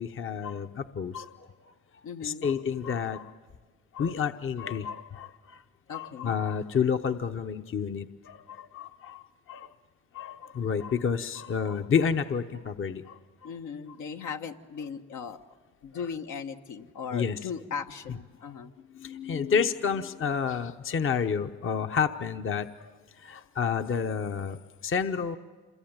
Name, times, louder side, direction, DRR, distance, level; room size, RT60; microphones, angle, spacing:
voice 1, 0.0-1.5 2.2-3.3 3.9-5.6 5.9-9.7 10.1-13.2 17.1-17.4 18.4-18.5 18.9-22.9 23.2-24.6 24.8-25.4, left 6 dB, 45° left, 7 dB, 0.9 m, -30 dB
voice 2, 2.0-2.5 5.9-6.4 13.4-15.4 15.8-18.7, left 6 dB, 75° left, 4 dB, 1.4 m, -38 dB
27.0 x 22.5 x 9.0 m, 1.4 s
cardioid pair, 90°, 30 cm